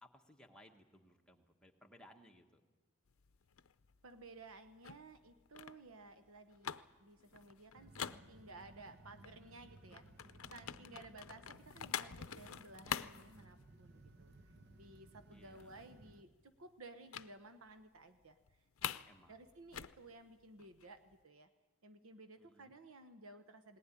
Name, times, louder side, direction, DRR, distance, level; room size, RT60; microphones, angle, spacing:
voice 1, 0.0-2.6 10.6-11.0 15.3-15.8 19.0-19.4 22.4-22.7, equal, 5° left, 1 dB, 1.4 m, -63 dB
sound 1, 3.1-8.9 9.2-14.1 14.4-14.7 15.0-15.1 15.4-16.1 17.1-17.3 17.7-17.8 18.2-19.1 19.4-21.1, left 8 dB, 75° left, 0.6 m, -46 dB
voice 2, 4.0-19.0 19.3-21.5 21.8-23.8, right 2 dB, 75° right, 8 dB, 1.0 m, -56 dB
sound 2, 7.7-16.2, right 2 dB, 50° right, 1.1 m, -60 dB
19.5 x 18.5 x 9.9 m, 1.2 s
head